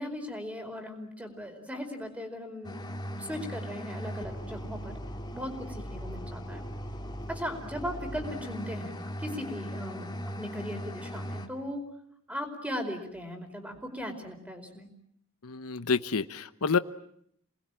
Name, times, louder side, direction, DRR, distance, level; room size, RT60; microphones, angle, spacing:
voice 1, 0.0-2.8 3.1-4.9 5.3-6.7 7.3-11.8 12.3-14.9, equal, 5° right, 5 dB, 4.8 m, -38 dB
sound 1, 2.6-11.5, equal, 20° left, 2.8 m, -39 dB
voice 2, 15.4-16.8, left 5 dB, 85° left, 12 dB, 1.0 m, -28 dB
29.0 x 21.0 x 9.0 m, 0.71 s
head